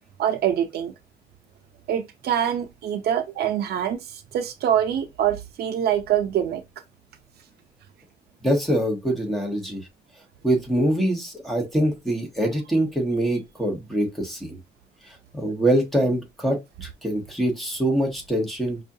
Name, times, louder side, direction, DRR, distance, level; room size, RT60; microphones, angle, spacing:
voice 1, 0.2-0.9 1.9-6.6, right 10 dB, 85° right, 0.6 m, -24 dB
voice 2, 8.4-9.8 10.4-14.6 15.3-18.8, right 1 dB, ahead, 1.2 m, -24 dB
5.3 x 2.4 x 2.7 m
cardioid pair, 165°, 16 cm